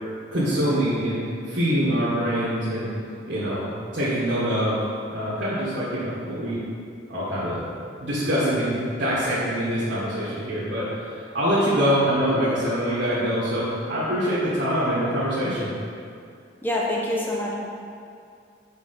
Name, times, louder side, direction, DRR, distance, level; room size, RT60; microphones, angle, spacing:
voice 1, 0.3-2.9 3.3-3.6 3.9-4.8 5.1-6.6 7.1-7.6 8.0-15.7, equal, 70° right, -11 dB, 1.8 m, -24 dB
voice 2, 16.6-17.5, left 1 dB, 10° left, -3 dB, 0.9 m, -25 dB
6.7 x 4.6 x 5.4 m, 2.3 s
head